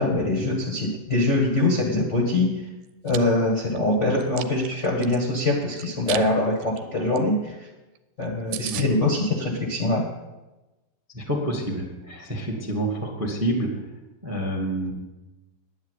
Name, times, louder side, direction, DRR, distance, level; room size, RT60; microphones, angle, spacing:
voice 1, 0.0-2.5 3.0-7.7 8.2-10.0, left 2 dB, 45° left, -1 dB, 0.9 m, -23 dB
Chewing mastication, 2.8-3.2 3.7-5.2 5.8-6.3 6.6-6.8 7.1-7.2 7.5-7.6 8.0-8.1 8.2-8.3 8.5-8.9, right 14 dB, 85° right, 2.5 m, -34 dB
voice 2, 11.1-13.7 14.2-14.9, right 1 dB, 10° right, 2 dB, 0.6 m, -28 dB
10.5 x 9.9 x 8.2 m, 1.1 s
omnidirectional pair, 4.4 m